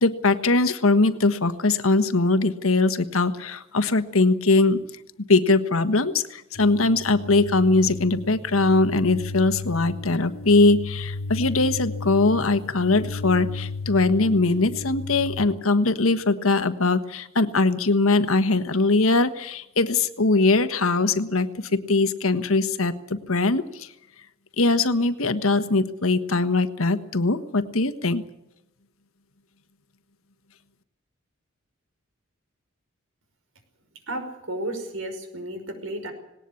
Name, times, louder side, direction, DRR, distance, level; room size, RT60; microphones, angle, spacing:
voice 1, 0.0-4.8 5.3-23.9 24.6-28.2, left 3 dB, 85° left, 10 dB, 1.4 m, -21 dB
sound 1, 6.5-15.5, left 3 dB, 65° left, 1.1 m, -34 dB
voice 2, 34.1-36.1, right 1 dB, 75° right, 7 dB, 5.4 m, -33 dB
19.0 x 18.5 x 8.5 m, 0.88 s
head